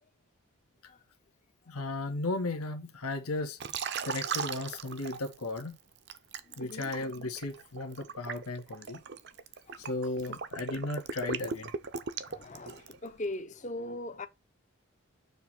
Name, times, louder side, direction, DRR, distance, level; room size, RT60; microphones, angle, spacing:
voice 1, 1.7-3.6 4.0-5.8 6.6-9.0 9.8-11.7, left 2 dB, 90° left, 1.2 m, -35 dB
Liquid, 3.6-5.6 6.1-13.1, right 5 dB, 50° right, 0.6 m, -38 dB
voice 2, 6.5-6.9 10.3-10.4 12.2-14.3, left 1 dB, 35° left, 0.6 m, -40 dB
6.9 x 3.1 x 5.8 m
head